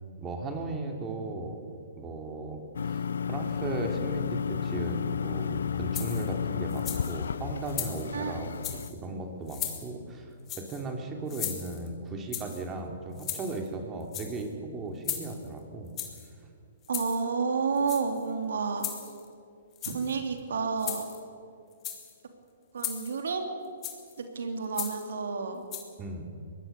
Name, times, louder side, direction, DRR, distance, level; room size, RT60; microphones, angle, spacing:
voice 1, 0.2-1.6 2.0-15.9 26.0-26.3, right 2 dB, 20° right, 3 dB, 3.0 m, -36 dB
sound 1, 2.7-8.9, left 7 dB, 75° left, 0.5 m, -32 dB
sound 2, 5.9-6.3 6.7-7.2 7.7-8.1 8.5-8.9 9.5-9.9 10.5-10.8 11.3-11.9 12.3-12.6 13.2-13.7 14.0-14.5 15.0-15.5 16.0-16.3 16.8-17.2 17.8-18.3 18.8-19.3 19.7-20.1 20.8-21.2 21.7-22.1 22.8-23.2 23.8-24.1 24.7-25.1 25.7-25.8, left 10 dB, 25° left, 3.2 m, -37 dB
voice 2, 16.9-18.9 19.8-21.1 22.7-23.4 24.2-25.6, right 5 dB, 75° right, 5 dB, 3.0 m, -30 dB
23.0 x 19.5 x 6.9 m, 2.3 s
hypercardioid pair, 130°, 0 cm